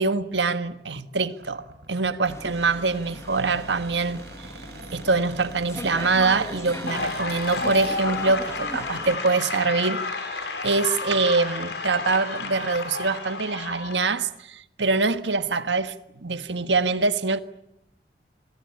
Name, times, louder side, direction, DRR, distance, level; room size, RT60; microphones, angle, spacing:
voice 1, 0.0-1.6 1.9-4.5 4.9-17.4, right 3 dB, 85° right, 1.5 m, -24 dB
Cupboard open or close, 1.3-8.0, right 3 dB, 65° right, 4.6 m, -43 dB
sound 1, 2.2-9.2, left 1 dB, 15° left, 1.6 m, -39 dB
sound 2, 6.9-14.1, left 3 dB, 80° left, 6.3 m, -31 dB
27.0 x 23.0 x 8.6 m
head